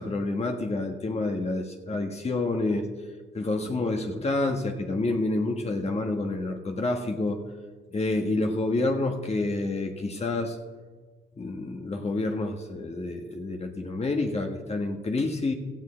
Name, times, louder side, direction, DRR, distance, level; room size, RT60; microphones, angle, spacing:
voice 1, 0.0-2.9 3.3-7.4 7.9-10.6 11.4-15.5, left 2 dB, 35° left, 3 dB, 1.5 m, -28 dB
16.5 x 13.5 x 3.4 m, 1.4 s
cardioid pair, 90°, 20 cm